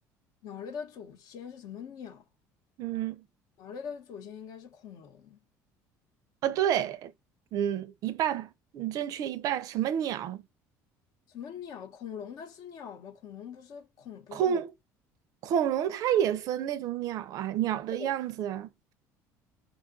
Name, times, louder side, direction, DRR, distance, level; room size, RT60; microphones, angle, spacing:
voice 1, 0.4-2.2 3.6-5.4 11.3-14.6 17.9-18.2, left 7 dB, 65° left, 0.9 m, -42 dB
voice 2, 2.8-3.2 6.4-7.1 7.5-10.4 14.3-14.7 15.4-18.9, right 10 dB, 60° right, 0.4 m, -29 dB
4.9 x 2.3 x 2.4 m
supercardioid pair, 105°, 7 cm